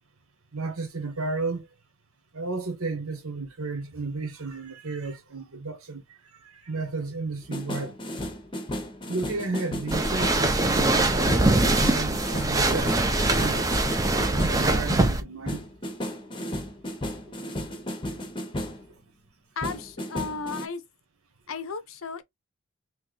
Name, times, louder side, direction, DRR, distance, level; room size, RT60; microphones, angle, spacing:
voice 1, 0.5-1.7 2.3-8.3 9.1-13.6 14.3-15.9 16.4-16.5 17.3-17.4, right 3 dB, 80° right, 1.2 m, -33 dB
sound 1, 7.4-10.6 11.3-18.9 19.6-20.7, equal, 20° left, 0.7 m, -34 dB
sound 2, 9.9-15.2, right 2 dB, 15° right, 0.5 m, -23 dB
voice 2, 19.6-20.8 21.5-22.2, left 4 dB, 70° left, 0.6 m, -34 dB
3.1 x 2.9 x 3.8 m
head